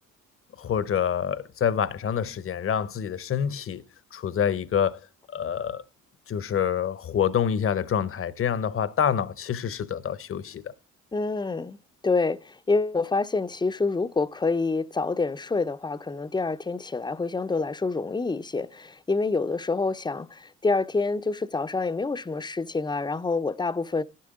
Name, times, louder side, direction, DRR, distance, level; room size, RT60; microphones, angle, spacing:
voice 1, 0.6-3.8 4.1-5.0 5.3-5.8 6.3-10.7, left 8 dB, 45° left, 0.9 m, -27 dB
voice 2, 11.1-11.8 12.0-24.0, left 3 dB, 15° left, 0.6 m, -27 dB
11.5 x 11.5 x 3.7 m
cardioid pair, 90°, 30 cm